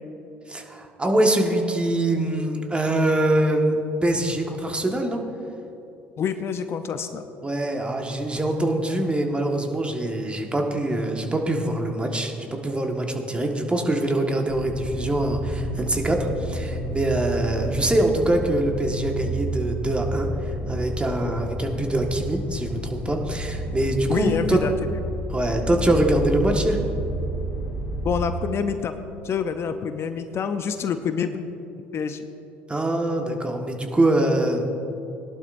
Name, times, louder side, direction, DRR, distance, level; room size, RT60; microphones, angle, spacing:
voice 1, 0.5-5.2 7.4-20.3 20.7-24.6 25.3-26.8 32.7-34.8, right 1 dB, 20° right, 2 dB, 1.6 m, -24 dB
voice 2, 6.2-7.3 24.1-24.7 28.0-29.0 29.2-31.5 31.9-32.3, left 7 dB, 45° left, 9 dB, 0.7 m, -27 dB
sound 1, 14.5-28.2, right 1 dB, 70° left, 2.2 m, -30 dB
18.0 x 11.5 x 2.7 m, 3.0 s
hypercardioid pair, 65°, 6 cm